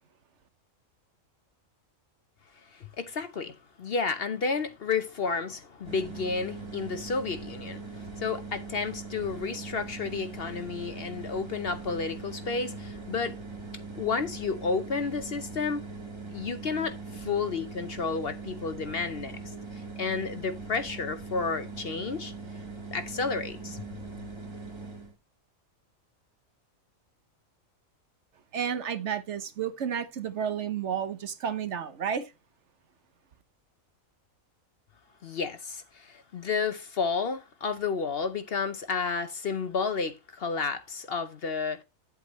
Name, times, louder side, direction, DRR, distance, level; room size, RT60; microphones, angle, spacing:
voice 1, 2.7-13.4 14.0-15.8 16.3-19.4 19.7-22.3 22.9-23.8 35.2-41.8, left 5 dB, 50° left, 0.9 m, -31 dB
sound 1, 5.8-25.1, right 4 dB, 20° right, 1.5 m, -41 dB
voice 2, 28.5-32.3, right 8 dB, 60° right, 1.1 m, -31 dB
9.6 x 8.2 x 3.0 m
omnidirectional pair, 1.4 m